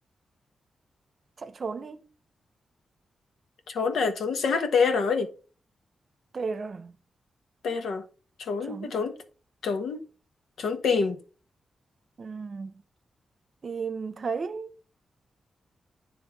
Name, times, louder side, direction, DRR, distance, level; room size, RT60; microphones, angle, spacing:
voice 1, 1.4-2.1 6.3-7.0 8.6-9.0 12.2-12.7 13.6-14.7, right 5 dB, 45° right, 0.7 m, -34 dB
voice 2, 3.7-5.3 7.6-8.0 8.4-9.1 9.6-10.0 10.6-11.2, left 5 dB, 85° left, 1.2 m, -26 dB
9.9 x 3.5 x 4.6 m
wide cardioid pair, 140°, 0 cm